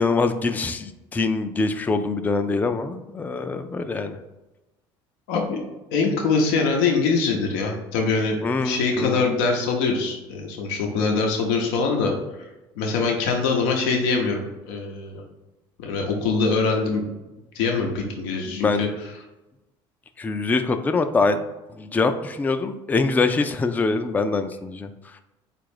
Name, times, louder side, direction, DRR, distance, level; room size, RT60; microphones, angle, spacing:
voice 1, 0.0-4.2 8.4-9.3 18.4-18.9 20.2-21.5 21.8-24.9, left 3 dB, 15° left, 8 dB, 0.3 m, -24 dB
voice 2, 5.3-5.6 5.9-12.1 12.8-15.2 15.8-17.0 17.5-18.9, left 4 dB, 85° left, 1 dB, 0.7 m, -23 dB
4.2 x 2.5 x 4.8 m, 1.0 s
supercardioid pair, 90°, 11 cm